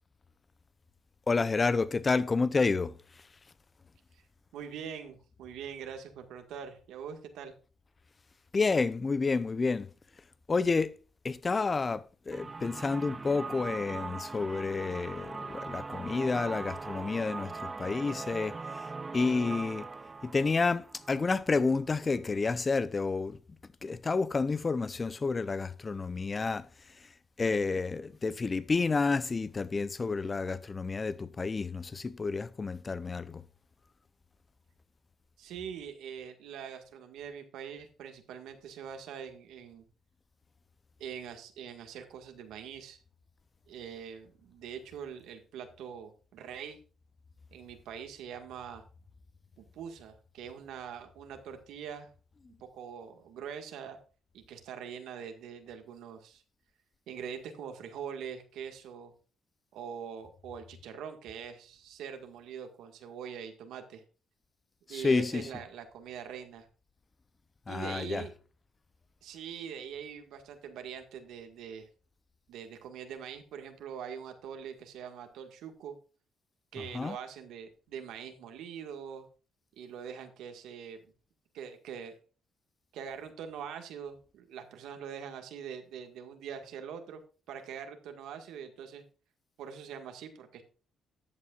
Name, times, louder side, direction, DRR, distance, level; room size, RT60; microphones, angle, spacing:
voice 1, 1.3-3.0 8.5-9.9 10.5-11.0 11.2-18.9 19.1-19.9 20.2-23.4 23.8-26.7 27.4-33.4 64.9-65.5 67.7-68.2 76.8-77.2, left 4 dB, 30° left, 0.7 m, -30 dB
voice 2, 4.5-7.5 35.4-39.9 41.0-43.0 43.7-46.8 47.5-48.8 49.6-52.1 52.7-54.0 54.3-56.4 57.1-59.1 59.7-64.0 64.9-66.7 67.7-68.3 69.2-71.9 72.5-76.0 76.7-79.3 79.8-81.0 81.5-82.1 82.9-87.2 87.5-89.0 89.6-90.6, right 7 dB, 85° right, 1.8 m, -43 dB
sound 1, 12.3-22.0, right 4 dB, 30° right, 0.4 m, -41 dB
14.0 x 8.4 x 2.5 m
cardioid pair, 90°, 0 cm